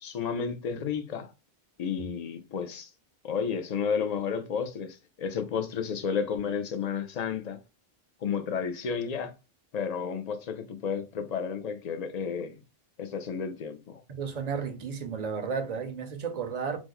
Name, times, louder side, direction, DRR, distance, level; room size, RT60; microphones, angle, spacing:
voice 1, 0.0-1.3 1.8-2.9 3.2-7.6 8.2-9.3 9.7-12.5 13.0-14.0, left 6 dB, 50° left, 0.5 m, -32 dB
voice 2, 14.1-16.8, right 6 dB, 50° right, 0.6 m, -33 dB
3.0 x 2.0 x 3.6 m
omnidirectional pair, 1.0 m